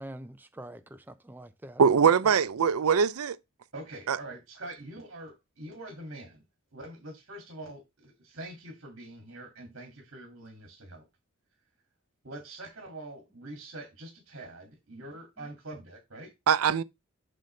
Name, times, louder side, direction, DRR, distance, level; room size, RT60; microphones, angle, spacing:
voice 1, 0.0-1.8 2.2-2.3 15.4-15.5, right 1 dB, 10° right, 0.4 m, -44 dB
voice 2, 1.8-3.4 4.1-4.2 16.5-16.8, right 6 dB, 90° right, 0.5 m, -22 dB
voice 3, 3.7-6.4 6.7-11.0 12.2-16.3, right 1 dB, 60° right, 2.1 m, -44 dB
7.7 x 5.4 x 3.2 m
head